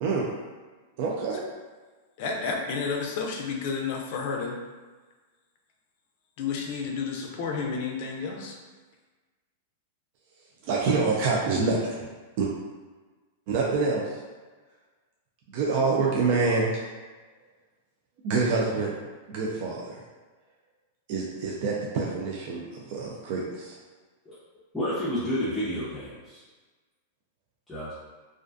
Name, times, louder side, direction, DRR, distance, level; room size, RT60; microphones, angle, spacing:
voice 1, 1.0-1.4 10.6-12.0 12.4-12.5 13.5-14.1 15.5-16.7 18.2-18.9 19.3-20.0 21.1-23.7, right 4 dB, 50° right, -3 dB, 0.3 m, -26 dB
voice 2, 2.2-4.6 6.4-8.6, left 5 dB, 55° left, 1 dB, 0.4 m, -31 dB
voice 3, 24.7-26.4 27.7-27.9, equal, 10° left, -12 dB, 0.6 m, -30 dB
2.4 x 2.2 x 2.5 m, 1.3 s
hypercardioid pair, 140°, 0 cm